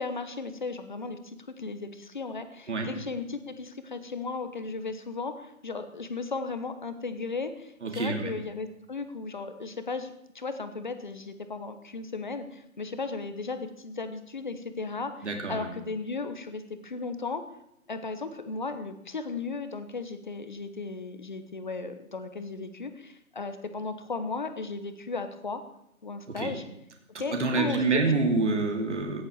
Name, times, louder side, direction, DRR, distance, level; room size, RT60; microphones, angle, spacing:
voice 1, 0.0-17.4 17.9-25.6 26.0-26.6 27.2-28.1, left 4 dB, 30° left, 10 dB, 1.2 m, -35 dB
voice 2, 7.8-8.4 15.2-15.7 26.3-26.5 27.3-29.2, right 3 dB, 50° right, 3 dB, 2.9 m, -27 dB
15.0 x 10.0 x 7.2 m, 0.81 s
figure-of-eight pair, 165°, 44 cm